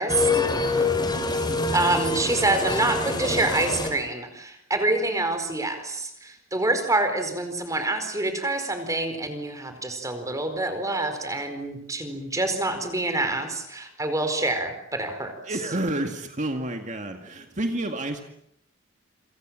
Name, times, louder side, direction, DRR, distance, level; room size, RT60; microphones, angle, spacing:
voice 1, 0.1-3.9, left 3 dB, 20° left, 7 dB, 5.7 m, -25 dB
voice 2, 1.7-15.3, right 2 dB, 15° right, 7 dB, 4.7 m, -26 dB
voice 3, 15.4-18.2, right 1 dB, 35° right, 5 dB, 2.1 m, -29 dB
29.0 x 26.0 x 7.6 m, 0.71 s
head